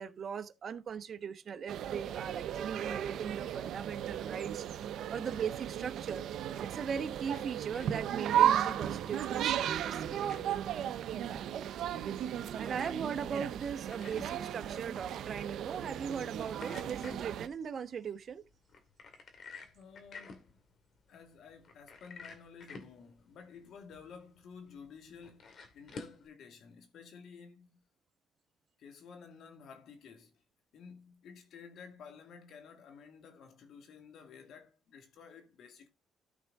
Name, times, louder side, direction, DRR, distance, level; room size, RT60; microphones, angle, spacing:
voice 1, 0.0-4.7 5.1-6.3 6.6-10.2 12.6-18.4, right 7 dB, 55° right, 1.0 m, -39 dB
sound 1, 1.7-17.5, right 10 dB, 75° right, 0.7 m, -35 dB
Soap Dispenser, 6.9-26.3, left 4 dB, 55° left, 2.2 m, -54 dB
voice 2, 12.6-13.0 19.7-20.6 21.1-27.9 28.8-30.4 30.7-35.9, left 6 dB, 75° left, 2.3 m, -53 dB
13.5 x 4.6 x 3.6 m
cardioid pair, 90°, 0 cm